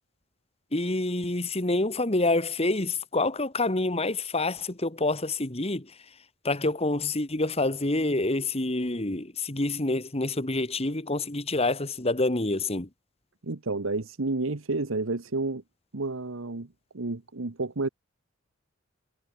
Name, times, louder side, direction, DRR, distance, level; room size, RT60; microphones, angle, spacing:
voice 1, 0.7-6.0 6.4-12.9, left 2 dB, 30° left, 1.8 m, -27 dB
voice 2, 13.4-15.6 15.9-16.7 16.9-17.9, right 3 dB, 85° right, 1.2 m, -30 dB
head